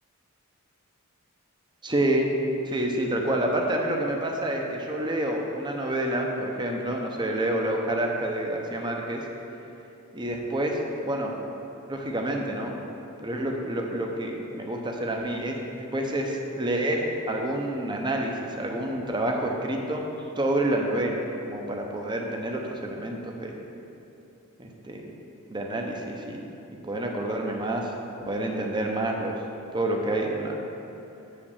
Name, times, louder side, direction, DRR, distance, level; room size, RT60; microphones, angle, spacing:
voice 1, 1.8-2.3 2.7-9.2 10.1-11.3 11.9-12.7 13.2-20.0 20.4-23.6 24.6-25.1 25.5-26.5 26.8-27.9 28.3-29.3 29.7-30.6, right 1 dB, 20° right, 1 dB, 0.8 m, -28 dB
7.3 x 5.1 x 7.2 m, 2.9 s
head